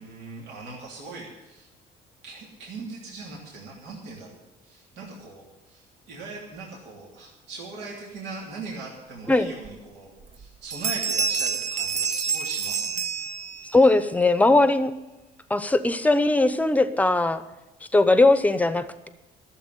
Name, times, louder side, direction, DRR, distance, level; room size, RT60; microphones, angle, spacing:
voice 1, 0.0-1.7 2.2-13.1, right 3 dB, 80° right, -3 dB, 3.1 m, -40 dB
Bell, 9.6-9.7 10.2-10.5 10.7-13.9, right 5 dB, 40° right, 0.8 m, -28 dB
voice 2, 13.7-14.9 15.5-17.4 17.9-19.1, left 2 dB, 10° left, 12 dB, 0.8 m, -19 dB
13.5 x 7.3 x 10.0 m, 1.0 s
cardioid pair, 110°, 17 cm